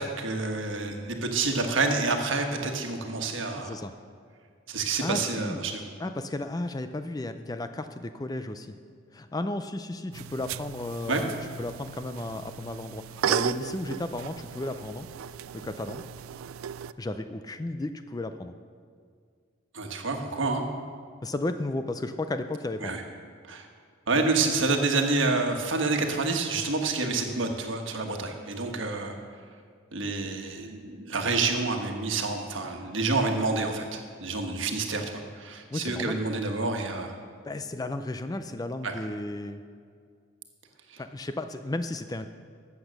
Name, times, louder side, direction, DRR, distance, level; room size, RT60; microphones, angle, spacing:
voice 1, 0.0-3.7 4.7-5.8 11.1-11.2 19.7-20.6 22.8-23.0 23.5-23.7 24.1-29.1 29.9-37.1 38.8-38.9, right 3 dB, 70° right, 3 dB, 1.4 m, -28 dB
voice 2, 3.5-3.9 5.0-5.7 6.0-8.8 9.1-15.1 15.5-16.0 17.0-18.6 21.2-23.0 35.7-36.2 37.4-39.6 41.0-42.3, left 2 dB, 20° left, 9 dB, 0.4 m, -34 dB
sound 1, 10.1-16.9, right 9 dB, 85° right, 0.3 m, -35 dB
13.0 x 8.1 x 6.5 m, 2.1 s
head